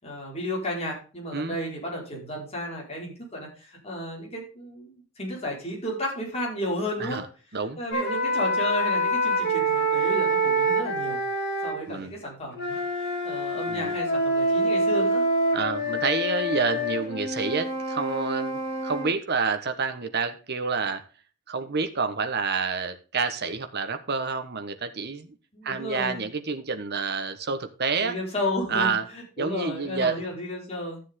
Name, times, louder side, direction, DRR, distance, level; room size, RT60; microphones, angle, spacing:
voice 1, 0.0-7.2 7.8-11.2 11.6-15.2 25.5-26.2 28.0-31.0, left 1 dB, 30° left, -3 dB, 5.1 m, -33 dB
sound 1, 7.9-11.8 12.5-19.1, right 1 dB, 55° left, 3.5 m, -26 dB
voice 2, 15.5-21.0 21.5-25.3 25.6-28.2 28.7-29.0 29.4-30.2, right 4 dB, 50° right, 9 dB, 1.3 m, -28 dB
13.5 x 7.3 x 3.8 m, 0.36 s
head